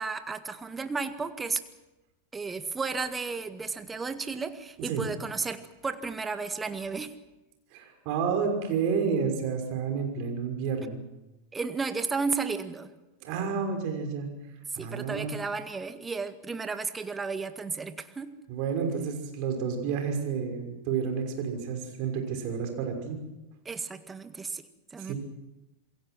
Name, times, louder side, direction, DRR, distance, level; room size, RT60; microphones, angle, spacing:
voice 1, 0.0-1.6 2.3-7.1 11.5-12.9 14.7-18.3 23.7-24.6 24.9-25.1, right 4 dB, 15° right, 10 dB, 1.8 m, -33 dB
voice 2, 7.7-11.0 13.2-14.3 14.7-15.4 18.5-23.2 25.0-25.1, right 6 dB, 45° right, 4 dB, 5.9 m, -30 dB
28.0 x 22.5 x 6.3 m, 1.0 s
figure-of-eight pair, 90°, 0 cm